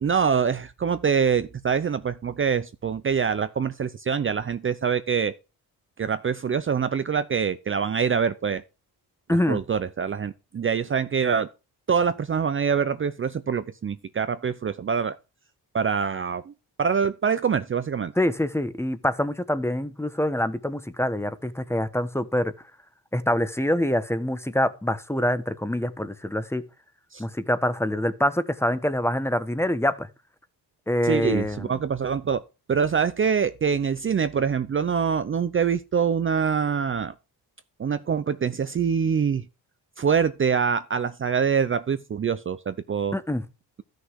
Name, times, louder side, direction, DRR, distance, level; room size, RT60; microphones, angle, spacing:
voice 1, 0.0-5.3 6.0-8.6 9.3-11.5 11.9-15.2 15.7-16.5 16.8-18.1 27.1-27.2 31.0-32.4 32.7-37.1 37.8-39.4 40.0-43.1, right 6 dB, 30° right, 0.6 m, -25 dB
voice 2, 9.3-9.6 18.2-22.5 23.1-26.6 27.2-30.1 30.9-31.7 43.1-43.4, left 1 dB, 5° left, 1.0 m, -25 dB
13.5 x 6.6 x 4.6 m
cardioid pair, 115°, 41 cm